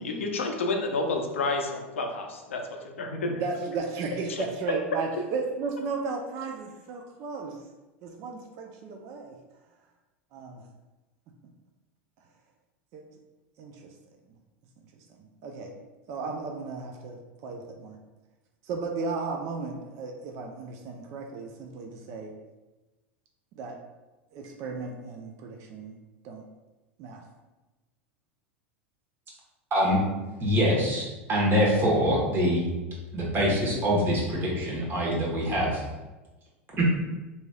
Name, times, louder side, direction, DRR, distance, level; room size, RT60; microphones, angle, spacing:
voice 1, 0.0-3.4 4.3-4.4, left 3 dB, 85° left, 3 dB, 0.4 m, -30 dB
voice 2, 3.4-7.6 8.0-9.4 10.3-10.6 12.9-13.0 13.6-13.9 15.1-15.7 16.1-18.0 18.7-22.3 23.6-23.8 24.3-26.0 26.2-26.4 27.0-27.2, right 4 dB, 50° right, 2 dB, 0.4 m, -35 dB
voice 3, 29.7-30.0 30.4-32.6 33.1-35.8 36.8-36.9, equal, 35° right, -4 dB, 1.1 m, -24 dB
3.0 x 2.7 x 2.3 m, 1.1 s
hypercardioid pair, 95°, 7 cm